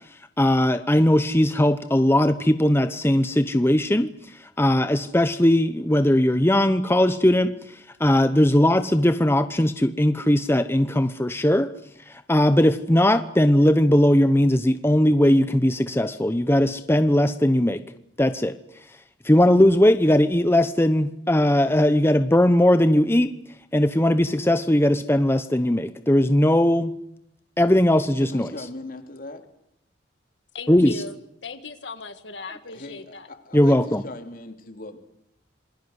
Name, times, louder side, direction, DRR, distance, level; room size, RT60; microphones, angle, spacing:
voice 1, 0.4-4.1 4.6-11.7 12.1-17.8 18.2-18.5 19.2-23.3 23.7-26.9 27.6-28.5 30.7-30.9 33.5-34.0, left 1 dB, 15° left, 10 dB, 0.9 m, -19 dB
voice 2, 28.2-29.4 32.7-35.0, left 2 dB, 50° left, 6 dB, 3.2 m, -39 dB
voice 3, 30.5-31.2 31.4-33.3, left 3 dB, 70° left, 9 dB, 1.7 m, -38 dB
27.5 x 21.5 x 8.1 m, 0.78 s
head